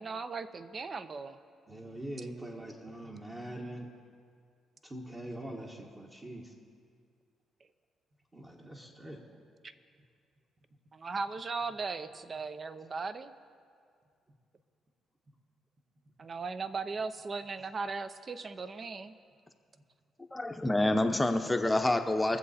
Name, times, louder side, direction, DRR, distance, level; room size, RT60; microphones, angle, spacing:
voice 1, 0.0-1.4 9.6-9.7 10.9-13.3 16.2-19.2 21.6-21.7, right 4 dB, 40° right, 12 dB, 0.6 m, -38 dB
voice 2, 1.7-3.9 4.8-6.5 8.3-9.2, right 1 dB, 25° right, -2 dB, 1.3 m, -43 dB
voice 3, 20.3-22.4, left 1 dB, 15° left, 6 dB, 0.8 m, -27 dB
22.0 x 7.6 x 4.2 m, 2.2 s
cardioid pair, 90°, 0 cm